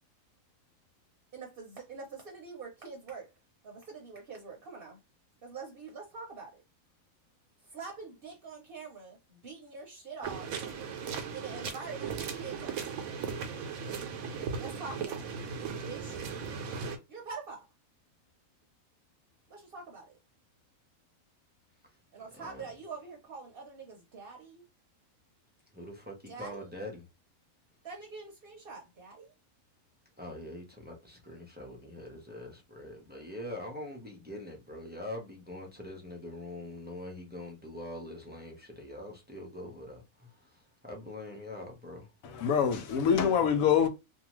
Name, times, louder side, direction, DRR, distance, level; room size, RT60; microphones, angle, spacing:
voice 1, 1.3-3.3 3.6-5.0 5.4-6.6 7.6-10.5 11.3-12.9 14.6-15.3 15.8-16.2 17.1-17.7 19.5-20.2 22.1-24.6 26.3-26.7 27.8-29.3, right 4 dB, 50° right, 0.8 m, -45 dB
sound 1, 10.2-17.0, right 6 dB, 90° right, 1.1 m, -37 dB
voice 2, 25.7-27.0 30.2-42.1, left 1 dB, 15° right, 0.4 m, -43 dB
voice 3, 42.2-43.9, left 7 dB, 85° left, 1.0 m, -25 dB
2.7 x 2.3 x 3.0 m
omnidirectional pair, 1.4 m